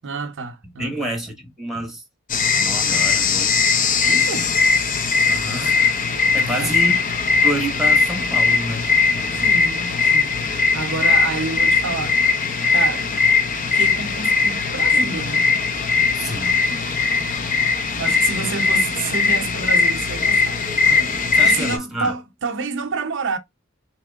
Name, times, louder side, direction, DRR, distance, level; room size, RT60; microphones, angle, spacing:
voice 1, 0.0-1.1 4.0-4.5 6.4-6.7 9.3-13.1 13.7-15.5 18.0-23.4, right 4 dB, 65° right, 0.6 m, -29 dB
voice 2, 0.8-2.0 2.6-3.5 5.3-6.0 6.3-7.0 7.4-9.6 16.1-16.6 21.3-22.1, right 1 dB, ahead, 1.2 m, -29 dB
sound 1, 2.3-21.8, left 5 dB, 40° left, 0.7 m, -19 dB
3.6 x 3.0 x 3.4 m
head